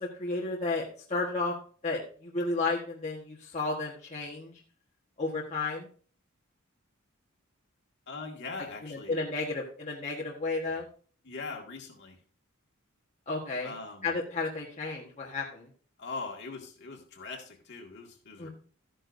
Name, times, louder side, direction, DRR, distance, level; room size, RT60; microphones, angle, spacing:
voice 1, 0.0-1.5 1.8-4.5 5.2-5.9 8.8-10.8 13.3-13.7 14.0-15.7 18.4-18.5, left 3 dB, 30° left, -4 dB, 1.4 m, -32 dB
voice 2, 8.1-9.2 11.2-12.2 13.6-14.1 16.0-18.5, left 4 dB, 55° left, 0 dB, 2.1 m, -41 dB
13.0 x 9.9 x 2.7 m, 0.43 s
head